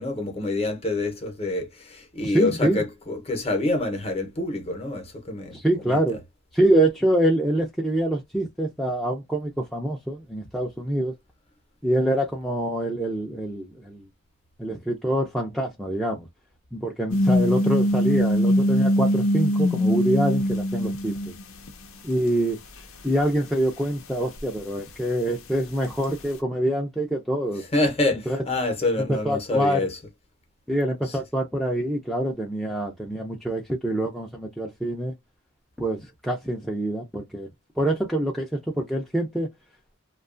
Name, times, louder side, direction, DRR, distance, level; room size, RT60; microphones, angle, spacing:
voice 1, 0.0-5.6 5.8-6.0 27.7-30.0, left 2 dB, 30° left, 0.7 m, -26 dB
voice 2, 2.2-2.8 5.5-6.2 6.5-11.1 11.8-14.0 14.6-16.3 16.7-21.3 22.0-22.6 23.0-27.6 28.3-28.4 29.1-29.9 30.7-35.1 35.8-37.5 37.8-39.5, right 1 dB, ahead, 0.4 m, -25 dB
sound 1, 17.1-21.4 21.7-21.8 24.4-24.5, equal, 75° left, 0.6 m, -22 dB
2.7 x 2.3 x 2.4 m
head